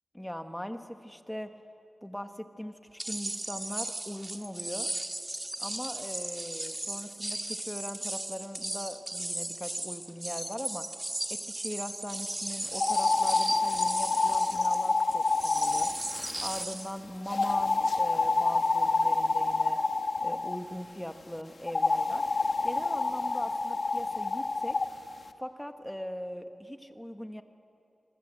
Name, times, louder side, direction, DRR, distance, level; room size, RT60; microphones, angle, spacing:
voice 1, 0.1-1.5 2.0-4.9 5.6-10.9 11.3-15.9 16.4-19.8 20.2-22.3 22.6-24.8 25.4-27.4, equal, 5° left, 7 dB, 1.4 m, -40 dB
sound 1, 3.0-17.0, right 1 dB, 20° right, 1.6 m, -36 dB
sound 2, 12.7-16.6 17.3-20.6 21.7-24.9, left 3 dB, 50° left, 1.3 m, -28 dB
27.0 x 25.0 x 7.7 m, 2.6 s
wide cardioid pair, 105°, 0 cm